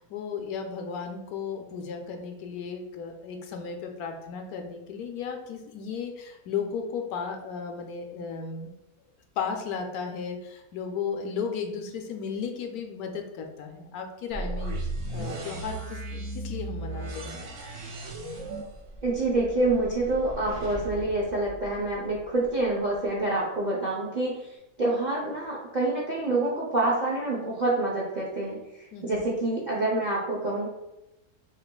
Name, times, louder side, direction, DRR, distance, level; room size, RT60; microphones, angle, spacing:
voice 1, 0.0-8.7 9.4-17.4 28.9-29.2, left 6 dB, 75° left, 4 dB, 1.1 m, -35 dB
sound 1, 14.3-22.2, right 2 dB, 70° right, 1.3 m, -36 dB
voice 2, 19.0-24.4 24.8-28.6 29.0-30.7, right 2 dB, 55° right, -5 dB, 0.5 m, -27 dB
6.4 x 2.5 x 2.2 m, 0.94 s
omnidirectional pair, 1.6 m